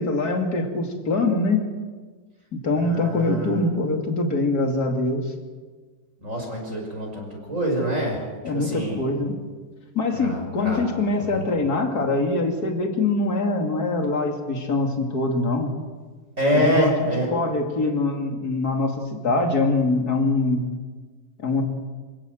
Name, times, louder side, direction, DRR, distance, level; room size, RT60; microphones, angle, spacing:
voice 1, 0.0-1.6 2.5-5.3 8.4-9.4 9.9-15.7 16.5-20.6 21.4-21.6, left 2 dB, 30° left, 3 dB, 2.7 m, -23 dB
voice 2, 2.7-3.6 6.2-8.2 8.5-9.0 10.2-10.8 11.3-11.4 16.4-17.3, equal, 20° right, 0 dB, 5.8 m, -25 dB
27.0 x 16.5 x 7.9 m, 1.4 s
omnidirectional pair, 3.8 m